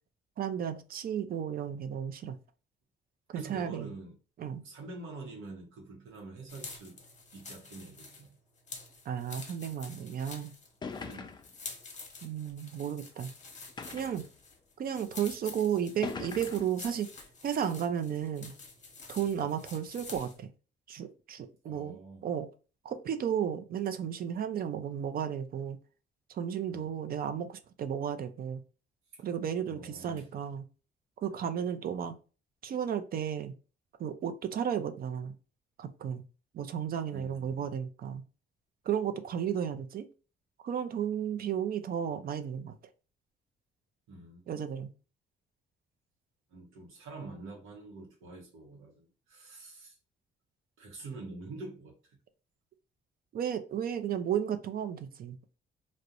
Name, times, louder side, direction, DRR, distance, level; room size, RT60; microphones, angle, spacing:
voice 1, 0.4-2.4 3.3-3.9 4.4-4.6 9.1-10.5 12.2-13.3 13.9-14.2 14.8-17.1 17.4-18.5 19.1-20.5 20.9-22.0 22.2-22.5 22.8-25.8 26.3-28.6 29.2-30.6 31.2-32.1 32.6-33.5 34.0-35.3 35.8-36.2 36.5-38.2 38.9-40.1 40.6-42.8 44.5-44.9 53.3-55.4, right 8 dB, 50° right, 0.4 m, -33 dB
voice 2, 3.3-4.2 4.6-7.0 7.3-8.4 11.0-11.3 14.8-15.0 19.4-19.5 21.6-22.3 26.7-26.9 29.1-29.2 29.7-30.3 37.1-37.7 44.1-44.5 46.5-50.0 50.8-52.2, right 3 dB, 90° right, 0.7 m, -46 dB
sound 1, 6.5-20.4, left 4 dB, 40° left, 0.8 m, -48 dB
sound 2, 10.2-10.3 10.8-11.6 12.5-12.6 13.8-14.3 15.2-15.3 16.0-16.8, left 5 dB, 20° left, 0.3 m, -41 dB
2.4 x 2.0 x 2.8 m
cardioid pair, 90°, 20 cm